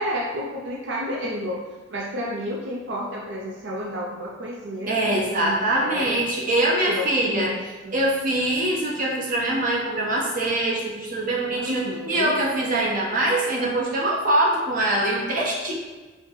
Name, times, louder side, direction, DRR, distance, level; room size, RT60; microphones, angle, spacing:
voice 1, 0.0-6.2 6.9-8.0 11.5-12.4, equal, 75° right, -3 dB, 0.5 m, -31 dB
voice 2, 4.9-7.5 7.9-15.7, right 1 dB, 45° right, -3 dB, 0.8 m, -23 dB
4.6 x 2.1 x 3.7 m, 1.3 s
head